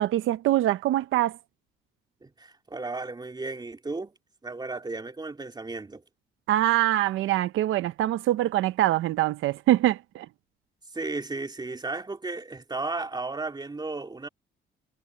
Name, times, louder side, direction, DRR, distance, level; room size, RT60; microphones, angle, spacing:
voice 1, 0.0-1.4 6.5-10.3, right 14 dB, 85° right, 0.8 m, -24 dB
voice 2, 2.2-4.1 4.4-6.0 10.9-14.3, right 3 dB, 20° right, 3.0 m, -34 dB
cardioid pair, 90°, 20 cm